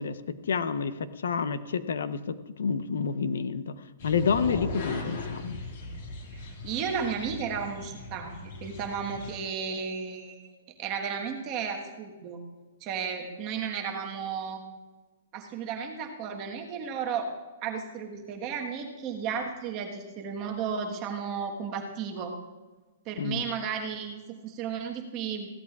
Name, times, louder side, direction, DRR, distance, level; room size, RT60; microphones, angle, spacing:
voice 1, 0.0-5.6 23.2-23.4, left 5 dB, 80° left, 12 dB, 0.8 m, -29 dB
sound 1, 4.0-9.4, left 3 dB, 40° left, 2.2 m, -38 dB
voice 2, 6.3-10.4 10.8-12.4 12.8-14.6 15.3-17.3 17.6-22.3 23.0-25.5, right 6 dB, 20° right, 2 dB, 1.3 m, -34 dB
21.0 x 16.0 x 2.4 m, 1.2 s
hypercardioid pair, 175°, 0 cm